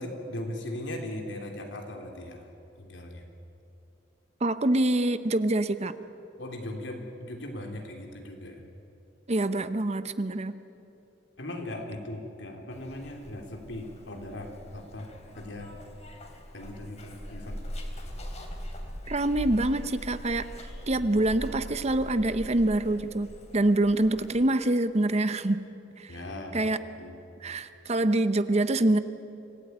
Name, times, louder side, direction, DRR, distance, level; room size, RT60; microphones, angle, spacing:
voice 1, 0.0-2.5 2.8-3.2 6.4-8.6 11.4-15.7 16.5-17.6 26.1-27.2, left 1 dB, 85° left, 3 dB, 3.5 m, -39 dB
voice 2, 4.4-5.9 9.3-10.5 19.1-25.6 26.0-26.2 26.5-26.8 27.4-29.0, right 1 dB, 35° right, 12 dB, 0.9 m, -25 dB
Zipper (clothing), 12.7-24.4, equal, 40° left, 3.1 m, -41 dB
26.0 x 17.0 x 9.4 m, 2.8 s
head